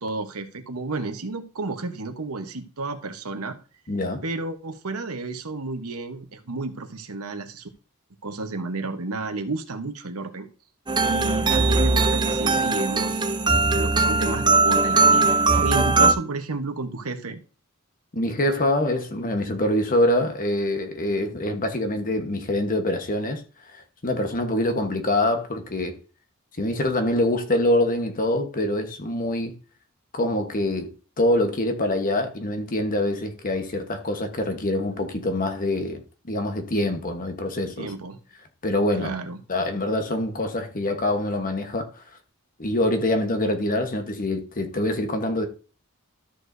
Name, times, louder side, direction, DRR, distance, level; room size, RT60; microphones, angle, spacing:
voice 1, 0.0-3.6 4.2-7.7 8.2-10.5 11.0-13.3 13.7-17.4 37.8-38.2 38.9-39.4, right 3 dB, 75° right, 1.1 m, -31 dB
voice 2, 3.9-4.2 18.1-23.4 23.7-26.0 26.6-29.5 30.1-30.9 31.2-37.9 38.6-39.1 39.5-42.0 42.6-45.5, left 1 dB, 40° left, 1.2 m, -25 dB
sound 1, 10.9-16.1, right 3 dB, 20° right, 0.6 m, -20 dB
13.5 x 6.5 x 2.7 m
head